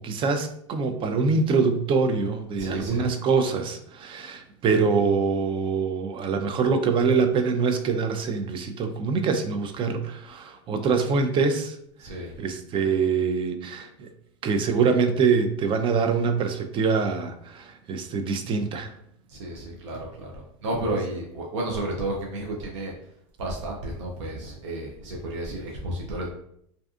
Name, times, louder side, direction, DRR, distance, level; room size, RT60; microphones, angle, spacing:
voice 1, 0.0-11.8 12.4-14.1 14.4-18.9, right 5 dB, 35° right, 7 dB, 0.4 m, -24 dB
voice 2, 2.6-3.1 12.0-12.4 19.3-22.9 23.4-26.3, right 1 dB, 85° right, -1 dB, 0.5 m, -32 dB
2.5 x 2.4 x 2.3 m, 0.72 s
hypercardioid pair, 100°, 15 cm